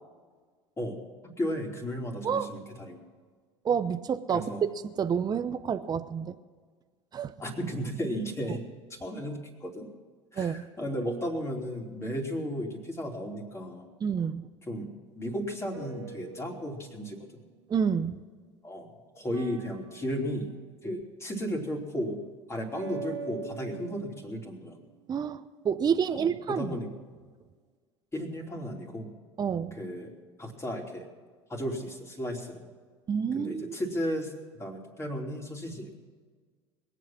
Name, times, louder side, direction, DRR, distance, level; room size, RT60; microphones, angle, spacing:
voice 1, 1.2-3.0 4.3-4.6 7.4-8.6 8.9-9.9 10.3-13.9 14.7-17.4 18.6-18.9 19.1-20.5 20.8-22.2 22.5-24.8 26.1-26.9 28.1-29.1 29.7-30.1 30.4-31.1 31.5-32.6 33.3-34.3 34.6-35.9, equal, 20° left, 1 dB, 3.3 m, -34 dB
voice 2, 3.6-4.4 5.0-6.4 7.1-7.3 8.5-8.6 10.4-10.7 14.0-14.4 17.7-18.2 25.1-26.8 29.4-29.8 33.1-33.8, right 7 dB, 30° right, 11 dB, 0.7 m, -29 dB
sound 1, 15.7-18.1 19.3-20.6 22.7-24.9, right 6 dB, 85° right, 0.9 m, -44 dB
21.5 x 8.3 x 6.0 m, 1.6 s
hypercardioid pair, 75°, 14 cm